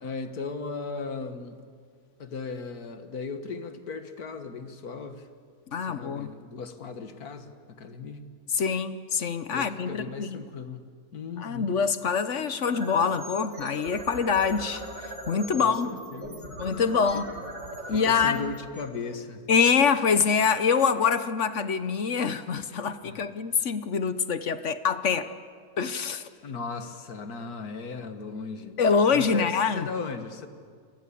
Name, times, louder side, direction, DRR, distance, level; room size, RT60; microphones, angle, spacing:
voice 1, 0.0-1.6 2.2-5.3 5.8-8.2 9.5-10.8 11.1-11.8 15.6-16.6 17.1-17.3 17.7-19.4 23.0-23.2 26.4-28.8 29.1-30.5, left 4 dB, 75° left, 2.0 m, -37 dB
voice 2, 5.7-6.3 8.5-10.4 11.4-15.9 16.6-17.3 17.9-18.5 19.5-25.3 25.8-26.3 28.8-29.9, left 6 dB, 55° left, 1.2 m, -25 dB
sound 1, 12.5-19.6, right 2 dB, 60° right, 4.0 m, -40 dB
29.5 x 22.0 x 8.5 m
omnidirectional pair, 1.6 m